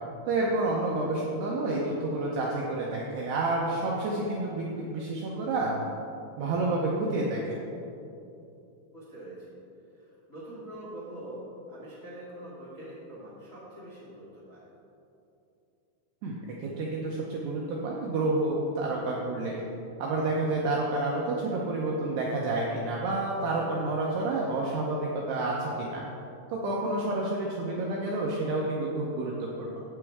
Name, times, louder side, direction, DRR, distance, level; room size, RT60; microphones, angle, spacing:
voice 1, 0.3-5.8 6.4-7.6 16.2-19.6 20.0-26.0 26.5-29.8, right 2 dB, 80° right, -3 dB, 2.4 m, -29 dB
voice 2, 8.9-9.4 9.9-14.6 27.1-27.2, right 1 dB, 45° left, -8 dB, 1.0 m, -44 dB
11.5 x 8.2 x 3.6 m, 2.8 s
omnidirectional pair, 5.8 m